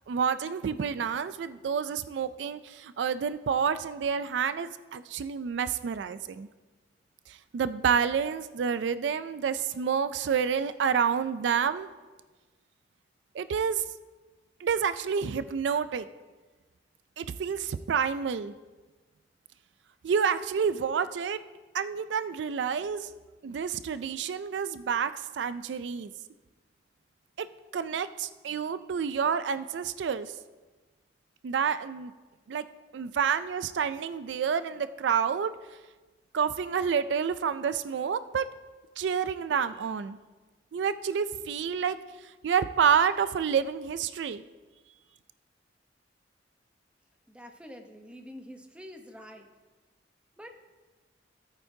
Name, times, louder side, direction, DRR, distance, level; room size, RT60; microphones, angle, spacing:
voice 1, 0.1-6.5 7.3-11.9 13.3-13.8 14.6-16.0 17.2-18.5 20.0-21.4 21.7-23.1 23.4-26.1 27.4-27.5 27.7-30.3 31.4-32.1 32.5-32.6 32.9-35.6 36.3-38.5 39.0-40.2 40.7-42.0 42.2-44.4, right 7 dB, 70° right, 13 dB, 0.4 m, -29 dB
voice 2, 47.3-49.5 50.4-50.6, equal, 5° right, 4 dB, 0.8 m, -46 dB
17.0 x 8.9 x 2.7 m, 1.3 s
head